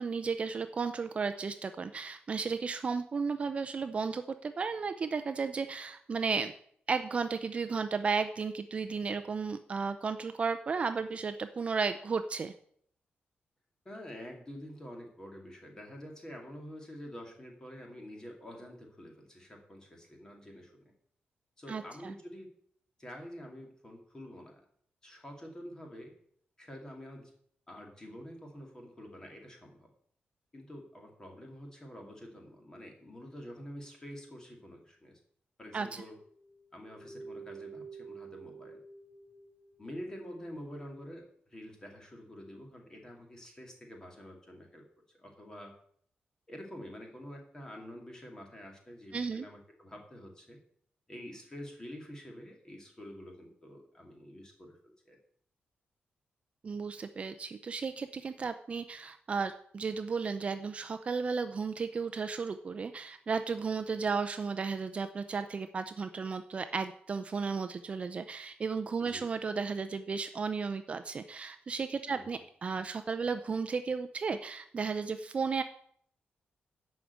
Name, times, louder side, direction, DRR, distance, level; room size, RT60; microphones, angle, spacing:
voice 1, 0.0-6.5 6.9-12.5 21.7-22.1 35.7-36.0 49.1-49.4 56.6-75.6, right 5 dB, 35° right, 9 dB, 0.5 m, -34 dB
voice 2, 13.8-20.9 21.6-22.5 23.0-24.6 25.0-26.1 26.6-27.3 27.7-29.9 30.5-35.2 35.6-36.2 36.7-38.8 39.8-44.8 45.1-45.8 46.5-50.6 51.1-55.2 69.0-69.3 72.1-72.3, equal, 15° left, 2 dB, 2.2 m, -47 dB
sound 1, 36.1-41.2, right 5 dB, 15° right, 4.1 m, -50 dB
11.0 x 5.0 x 8.0 m, 0.63 s
wide cardioid pair, 175°, 4 cm